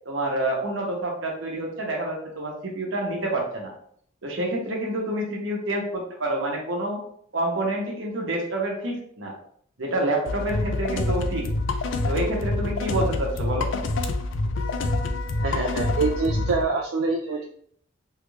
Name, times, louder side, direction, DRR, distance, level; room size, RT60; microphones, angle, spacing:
voice 1, 0.0-3.7 4.2-7.0 7.3-9.3 9.8-11.5 12.0-13.8, right 1 dB, 70° right, 0 dB, 0.9 m, -28 dB
sound 1, 10.3-16.6, left 2 dB, 65° left, 0.4 m, -26 dB
voice 2, 15.4-17.4, right 4 dB, 85° right, 0 dB, 0.4 m, -25 dB
3.2 x 2.4 x 3.1 m, 0.63 s
head